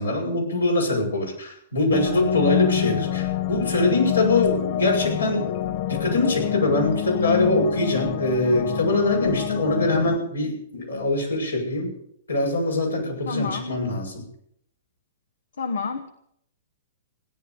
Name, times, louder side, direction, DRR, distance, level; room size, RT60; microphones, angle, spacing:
voice 1, 0.0-11.9 12.3-14.2, left 2 dB, 85° left, -2 dB, 7.8 m, -23 dB
sound 1, 1.9-10.2, left 13 dB, 50° left, 0.8 m, -27 dB
voice 2, 13.3-13.8 15.6-16.1, left 4 dB, 70° left, 8 dB, 1.2 m, -28 dB
17.5 x 11.0 x 7.1 m, 0.70 s
figure-of-eight pair, 110°, 0 cm